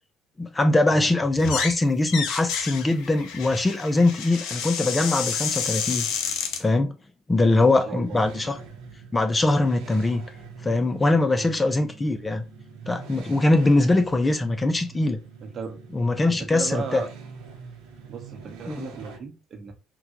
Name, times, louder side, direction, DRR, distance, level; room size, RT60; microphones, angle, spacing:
voice 1, 0.4-6.1 6.6-6.9 7.3-8.6 9.1-10.2 10.6-12.4 12.9-15.2 15.9-17.0 18.7-18.9, left 2 dB, 20° left, 0.5 m, -22 dB
voice 2, 0.9-1.2 7.4-8.2 11.3-11.5 13.0-13.1 15.4-15.8 16.3-17.1 18.1-19.7, right 5 dB, 50° right, 0.9 m, -36 dB
sound 1, 1.4-1.8 2.1-6.6, left 7 dB, 75° left, 0.5 m, -30 dB
sound 2, 7.5-19.2, right 5 dB, 85° right, 0.8 m, -44 dB
3.7 x 2.2 x 2.9 m
hypercardioid pair, 65°, 0 cm